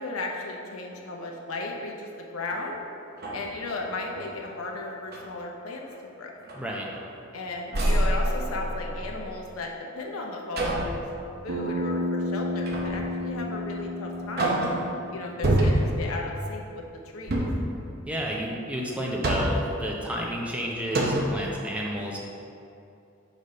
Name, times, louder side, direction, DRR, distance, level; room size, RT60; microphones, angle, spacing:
voice 1, 0.0-2.8 3.3-5.8 6.2-6.3 7.3-14.5 15.1-16.8 17.1-17.3, left 2 dB, 85° left, 0 dB, 0.8 m, -35 dB
sound 1, 2.5-2.6 3.1-4.3 4.8-5.3 5.8-6.0 6.4-7.3 7.7-9.2 10.6-11.0 12.7-13.1 13.6-13.7 14.1-15.0 15.4-16.1 17.2-17.7 18.9-19.7 20.5-20.6 20.9-21.4, right 1 dB, 50° right, 0.8 m, -27 dB
voice 2, 6.5-6.9 18.1-22.2, equal, 5° right, -2 dB, 0.6 m, -31 dB
Bass guitar, 11.5-15.8, left 1 dB, 70° right, 1.3 m, -32 dB
4.9 x 4.1 x 5.4 m, 2.6 s
head